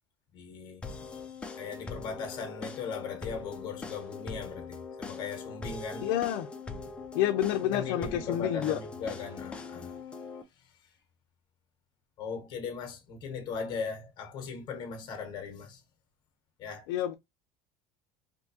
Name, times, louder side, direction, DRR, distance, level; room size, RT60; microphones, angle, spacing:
voice 1, 0.3-0.8 1.5-6.1 7.7-10.0 12.2-15.8 16.6-16.9, left 5 dB, 35° left, 1.0 m, -38 dB
sound 1, 0.8-10.4, left 4 dB, 10° left, 0.3 m, -42 dB
voice 2, 6.0-6.5 7.1-8.8 16.9-17.1, left 12 dB, 70° left, 0.4 m, -28 dB
3.5 x 2.7 x 2.7 m
cardioid pair, 170°, 12 cm